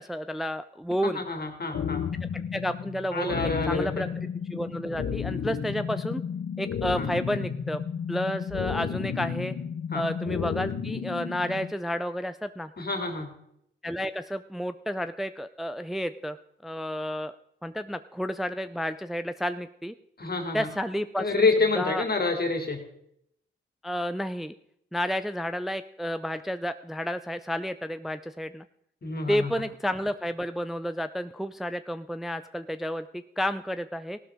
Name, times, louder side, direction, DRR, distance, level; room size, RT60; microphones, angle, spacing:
voice 1, 0.0-1.2 2.3-4.1 4.5-6.2 6.6-7.8 8.1-9.5 9.9-12.7 13.8-16.4 16.6-17.3 17.6-19.9 20.5-21.3 21.8-22.0 23.8-24.5 24.9-28.6 29.3-34.2, equal, ahead, 11 dB, 0.5 m, -31 dB
voice 2, 1.0-2.0 3.1-3.9 7.0-7.1 9.9-10.0 12.8-13.3 20.2-20.7 21.2-22.8 29.0-29.5, left 3 dB, 50° left, 4 dB, 2.7 m, -27 dB
sound 1, 1.7-11.7, left 7 dB, 90° left, 1.0 m, -32 dB
16.0 x 12.5 x 3.6 m, 0.75 s
cardioid pair, 75°, 21 cm